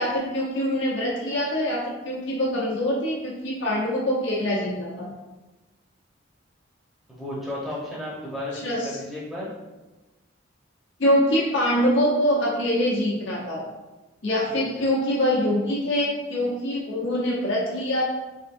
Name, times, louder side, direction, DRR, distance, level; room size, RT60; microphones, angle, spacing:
voice 1, 0.0-5.1 8.6-8.9 11.0-13.6 14.2-18.0, equal, 60° left, -5 dB, 0.9 m, -24 dB
voice 2, 7.1-9.5 14.5-14.9, left 1 dB, ahead, -8 dB, 1.1 m, -34 dB
3.7 x 3.6 x 2.6 m, 1.1 s
head